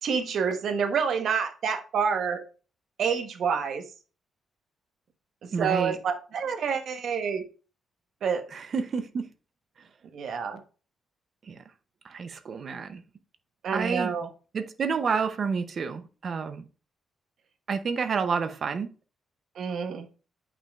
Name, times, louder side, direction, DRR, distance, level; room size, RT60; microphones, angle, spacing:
voice 1, 0.0-2.4 3.0-3.8 5.4-7.4 8.2-8.5 10.1-10.6 13.6-14.3 19.6-20.1, right 6 dB, 65° right, 1.0 m, -28 dB
voice 2, 5.5-6.0 8.5-9.3 11.4-11.6 12.0-13.0 13.7-14.1 14.5-16.7 17.7-18.9, right 5 dB, 45° right, 0.6 m, -29 dB
8.5 x 5.2 x 2.4 m
cardioid pair, 125°, 0 cm